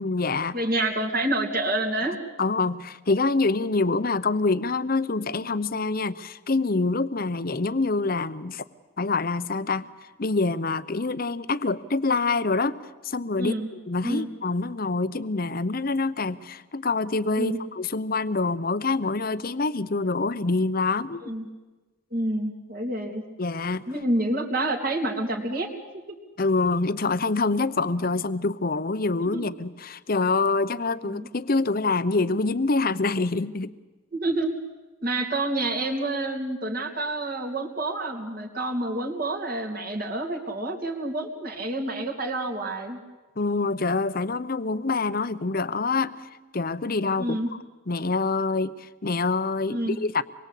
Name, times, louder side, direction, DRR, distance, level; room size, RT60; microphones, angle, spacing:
voice 1, 0.0-0.6 2.4-8.6 9.0-13.6 13.9-21.3 23.4-23.8 26.4-33.7 43.4-47.4 47.9-50.2, left 3 dB, 45° left, 15 dB, 0.8 m, -26 dB
voice 2, 0.5-2.2 13.4-13.7 14.0-14.3 17.3-17.6 21.2-21.5 22.1-23.2 23.9-25.7 26.1-26.2 29.2-29.5 34.1-34.6 35.0-43.0 47.2-47.5 49.7-50.0, right 1 dB, 45° right, 2 dB, 3.1 m, -28 dB
25.5 x 22.0 x 8.4 m, 1.2 s
head